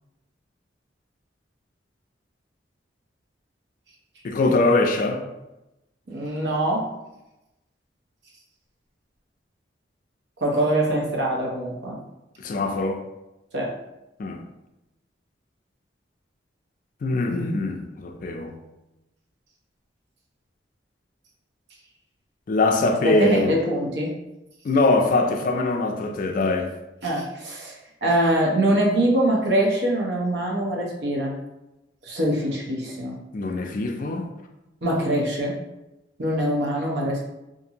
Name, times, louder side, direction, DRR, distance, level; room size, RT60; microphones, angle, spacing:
voice 1, 4.2-5.2 12.4-13.0 14.2-14.4 17.0-18.5 22.5-23.6 24.6-26.7 33.3-34.3, left 2 dB, 50° left, 3 dB, 0.3 m, -22 dB
voice 2, 6.1-6.8 10.4-11.9 13.5-13.7 23.0-24.1 27.0-27.7 28.0-31.3 32.0-33.1 34.8-35.5 36.2-37.2, right 1 dB, 65° right, -2 dB, 0.7 m, -23 dB
2.6 x 2.5 x 2.8 m, 0.95 s
head